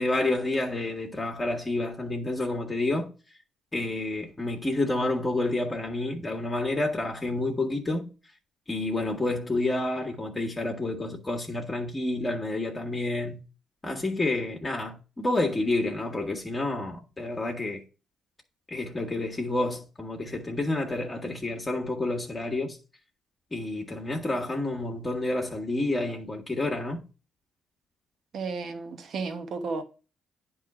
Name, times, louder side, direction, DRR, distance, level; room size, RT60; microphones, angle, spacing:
voice 1, 0.0-3.1 3.7-8.1 8.7-13.4 13.8-17.8 18.7-22.8 23.5-27.1, left 2 dB, 25° left, 1.4 m, -29 dB
voice 2, 28.3-29.8, right 4 dB, 60° right, 1.1 m, -33 dB
9.5 x 3.2 x 4.8 m
supercardioid pair, 55°, 0 cm